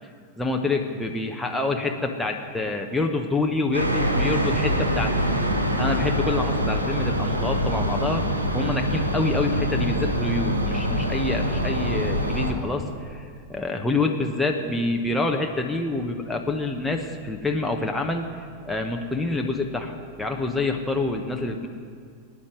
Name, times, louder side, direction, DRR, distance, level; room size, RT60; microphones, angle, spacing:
voice 1, 0.4-5.5 5.8-8.2 8.5-21.7, left 3 dB, 5° left, 1 dB, 1.1 m, -27 dB
sound 1, 3.7-12.5, equal, 80° right, 1.6 m, -24 dB
19.0 x 9.8 x 6.4 m, 2.1 s
figure-of-eight pair, 90°, 0 cm